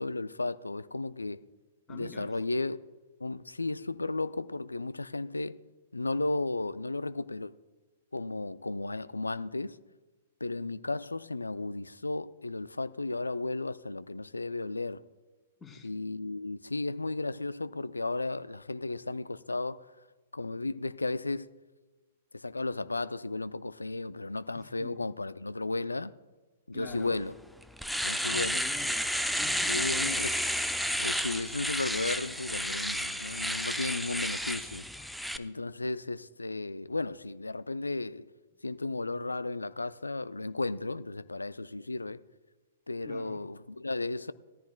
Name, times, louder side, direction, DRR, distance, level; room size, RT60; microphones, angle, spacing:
voice 1, 0.0-1.4 1.9-2.8 3.2-5.6 5.9-7.5 8.1-9.8 10.4-15.0 15.8-19.9 20.3-21.5 22.3-26.1 26.7-27.3 28.0-28.6 29.7-30.4 31.0-34.8 35.3-38.3 38.6-42.2 42.9-44.3, left 2 dB, 85° left, 0.4 m, -34 dB
voice 2, 1.9-2.3 15.6-15.9 24.6-25.0 26.7-27.2 28.2-30.2 43.0-43.4, left 4 dB, 20° left, 2.6 m, -46 dB
Domestic sounds home sounds, 27.1-27.2 27.6-35.4, equal, ahead, 0.5 m, -31 dB
19.0 x 14.0 x 2.2 m
figure-of-eight pair, 110°, 0 cm